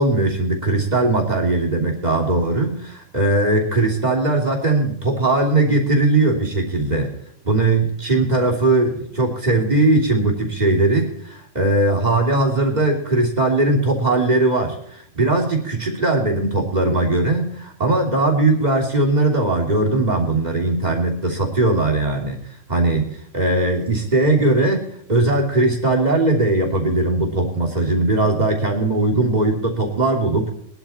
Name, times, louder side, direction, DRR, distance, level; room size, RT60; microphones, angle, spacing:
voice 1, 0.0-7.1 7.4-22.4 22.7-23.1 23.3-30.5, right 2 dB, 35° right, 0 dB, 3.3 m, -19 dB
21.0 x 12.0 x 4.3 m, 0.70 s
omnidirectional pair, 1.3 m